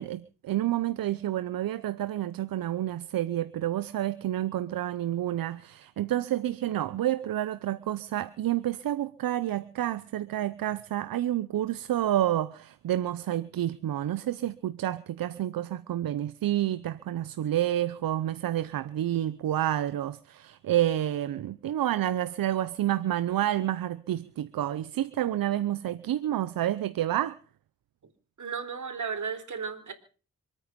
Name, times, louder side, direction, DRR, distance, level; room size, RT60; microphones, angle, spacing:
voice 1, 0.0-27.4, right 12 dB, 80° right, 0.8 m, -29 dB
voice 2, 28.4-29.9, right 6 dB, 60° right, 4.0 m, -34 dB
26.0 x 9.4 x 5.3 m
cardioid pair, 65°, 34 cm